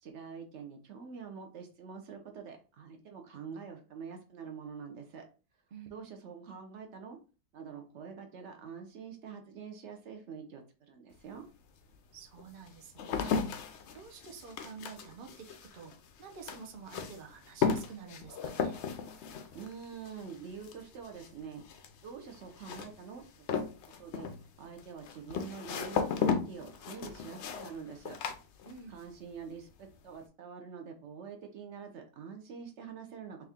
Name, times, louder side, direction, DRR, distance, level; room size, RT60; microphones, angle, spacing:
voice 1, 0.0-5.2 5.9-7.2 7.5-11.4 19.5-21.6 22.0-23.5 24.0-24.3 24.6-28.2 28.9-33.4, right 6 dB, 60° right, 4 dB, 0.8 m, -46 dB
sound 1, 11.2-11.3 11.9-29.1 29.4-30.0, left 6 dB, 80° left, 0.6 m, -36 dB
voice 2, 12.1-13.3 13.9-18.8 28.6-28.9, right 6 dB, 80° right, 3 dB, 0.4 m, -49 dB
3.6 x 2.8 x 3.4 m, 0.35 s
omnidirectional pair, 1.8 m